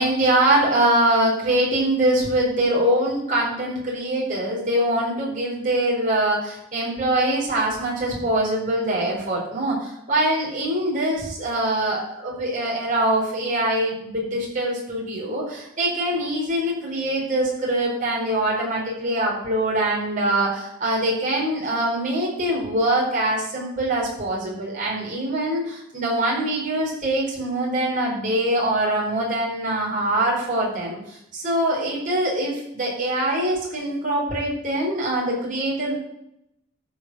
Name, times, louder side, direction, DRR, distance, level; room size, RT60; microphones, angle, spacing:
voice 1, 0.0-35.9, right 1 dB, 40° right, -4 dB, 4.6 m, -23 dB
13.0 x 5.5 x 6.3 m, 0.80 s
head